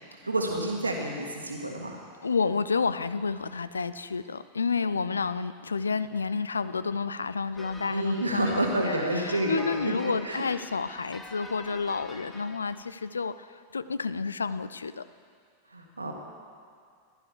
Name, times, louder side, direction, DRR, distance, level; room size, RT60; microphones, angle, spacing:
voice 1, 0.2-2.0 7.8-10.5 15.7-16.1, right 1 dB, 80° right, 1 dB, 1.8 m, -29 dB
voice 2, 2.2-13.5 13.7-15.1, left 5 dB, 75° left, 14 dB, 0.4 m, -30 dB
sound 1, 7.5-12.9, left 2 dB, 10° left, 1.1 m, -45 dB
15.5 x 11.5 x 5.0 m, 2.1 s
figure-of-eight pair, 90°, 0 cm